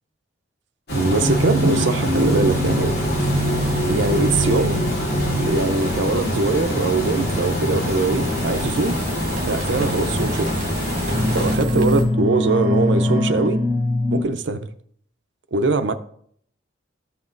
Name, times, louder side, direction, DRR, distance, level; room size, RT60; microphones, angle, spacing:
Water, 0.9-11.6, left 1 dB, 55° left, 2.7 m, -25 dB
voice 1, 0.9-2.9 3.8-4.8 5.2-9.0 9.4-10.6 11.1-13.6 14.1-14.7 15.5-15.9, right 3 dB, 70° right, 0.6 m, -22 dB
sound 1, 1.2-6.4 7.2-7.5 8.6-8.7 9.4-9.5 10.3-10.7 10.9-14.2, equal, 15° right, 1.0 m, -23 dB
sound 2, 2.1-12.0, right 2 dB, 45° right, 1.9 m, -33 dB
13.5 x 5.9 x 2.5 m
head